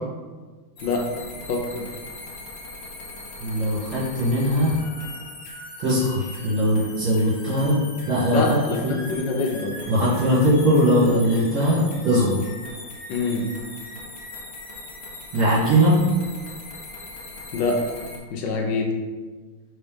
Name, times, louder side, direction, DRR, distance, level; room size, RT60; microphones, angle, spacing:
sound 1, 0.8-18.2, left 2 dB, 50° left, 1.3 m, -40 dB
voice 1, 1.5-1.9 8.3-9.8 13.1-13.5 17.5-17.8 18.3-18.9, left 3 dB, 70° left, 1 dB, 1.4 m, -25 dB
voice 2, 3.4-4.7 5.8-8.6 8.8-8.9 9.9-12.4 15.3-16.0, equal, 75° right, -11 dB, 2.6 m, -20 dB
4.3 x 4.2 x 5.2 m, 1.4 s
omnidirectional pair, 2.2 m